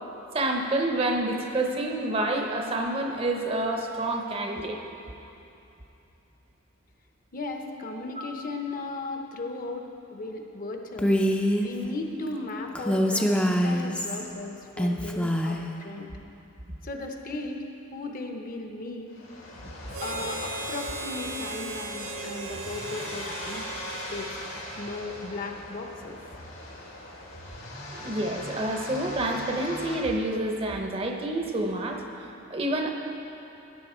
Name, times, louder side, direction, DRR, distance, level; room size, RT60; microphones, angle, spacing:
voice 1, 0.3-4.8 7.9-8.0 27.9-32.9, right 1 dB, 30° right, 2 dB, 0.8 m, -28 dB
voice 2, 7.3-11.2 11.6-16.1 16.8-19.1 20.0-23.7 23.9-24.4 24.8-26.2, left 2 dB, 45° left, 3 dB, 0.8 m, -36 dB
Female speech woman speaking, 11.0-11.7 12.8-14.2 14.8-15.7, equal, 5° left, 0.5 m, -24 dB
sound 1, 19.1-30.0, left 1 dB, 75° left, 1.9 m, -40 dB
Harmonica, 19.9-25.4, right 3 dB, 80° right, 1.3 m, -38 dB
13.0 x 9.6 x 4.4 m, 2.9 s
head